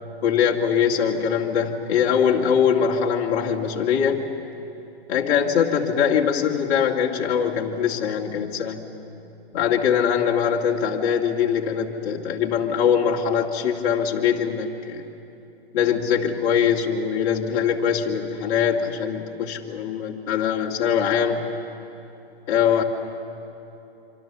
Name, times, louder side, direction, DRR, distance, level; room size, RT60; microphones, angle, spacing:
voice 1, 0.2-4.2 5.1-8.8 9.5-15.0 15.7-21.4 22.5-22.8, left 7 dB, 35° left, 0 dB, 2.3 m, -22 dB
26.0 x 25.5 x 6.9 m, 2.9 s
hypercardioid pair, 150°, 31 cm